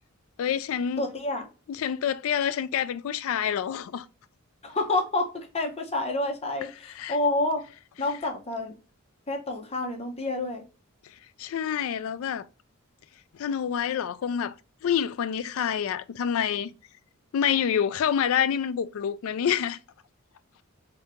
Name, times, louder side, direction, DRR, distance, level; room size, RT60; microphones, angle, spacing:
voice 1, 0.4-1.0 1.7-4.1 7.0-7.2 11.4-12.5 13.4-14.5 14.8-16.7 17.3-19.8, left 8 dB, 65° left, 0.3 m, -27 dB
voice 2, 1.0-1.4 4.6-7.6 8.0-8.7 9.3-10.6, left 2 dB, 30° left, 0.8 m, -28 dB
3.5 x 2.8 x 3.4 m
head